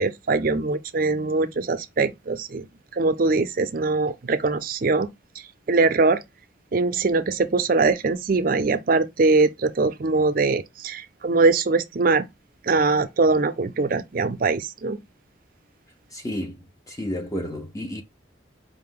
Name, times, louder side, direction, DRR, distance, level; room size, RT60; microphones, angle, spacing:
voice 1, 0.0-2.6 3.0-5.1 5.7-6.2 6.7-12.3 12.7-15.0, right 3 dB, 45° right, 0.5 m, -22 dB
voice 2, 16.1-16.6 16.9-18.0, left 1 dB, 15° left, 0.5 m, -31 dB
4.9 x 2.1 x 3.6 m
head